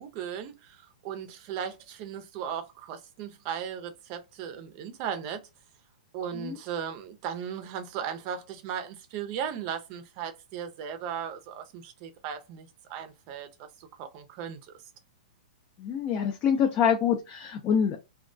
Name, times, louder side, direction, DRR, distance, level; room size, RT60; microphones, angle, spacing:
voice 1, 0.0-5.4 6.1-14.8, right 8 dB, 40° right, 0.5 m, -37 dB
voice 2, 15.8-18.0, left 7 dB, 30° left, 0.4 m, -25 dB
2.3 x 2.1 x 2.5 m
hypercardioid pair, 135°, 5 cm